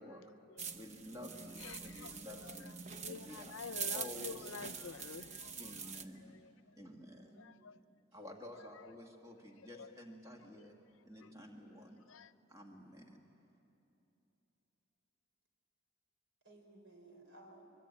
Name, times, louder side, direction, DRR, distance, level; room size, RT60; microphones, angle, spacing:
sound 1, 0.6-6.0, right 6 dB, 35° right, 0.8 m, -45 dB
voice 1, 0.7-2.8 3.0-3.5 3.9-4.5 5.6-6.4 6.8-7.4 8.1-10.7 11.1-12.0 12.5-13.2, left 1 dB, 15° right, 2.0 m, -51 dB
voice 2, 1.6-6.5 7.4-7.8 8.5-8.9 9.7-9.9 11.2-11.3 12.1-12.3, left 5 dB, 85° left, 0.6 m, -50 dB
voice 3, 6.9-7.5 8.1-8.4 16.4-17.7, right 2 dB, 70° right, 4.5 m, -60 dB
24.0 x 23.0 x 8.9 m
head